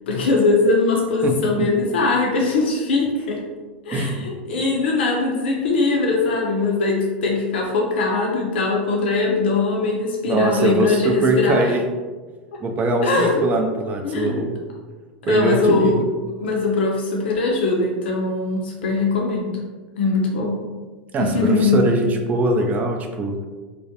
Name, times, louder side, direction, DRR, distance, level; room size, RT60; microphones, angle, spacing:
voice 1, 0.1-3.4 3.9-11.6 13.0-13.4 14.0-14.3 15.2-15.9 16.4-19.6 20.0-20.6 21.2-21.8, left 3 dB, 85° left, -1 dB, 0.4 m, -21 dB
voice 2, 1.2-1.7 3.9-4.3 10.2-11.8 12.6-14.6 15.3-16.0 21.1-23.5, right 2 dB, 30° right, 3 dB, 0.4 m, -22 dB
2.2 x 2.1 x 2.8 m, 1.4 s
hypercardioid pair, 105°, 6 cm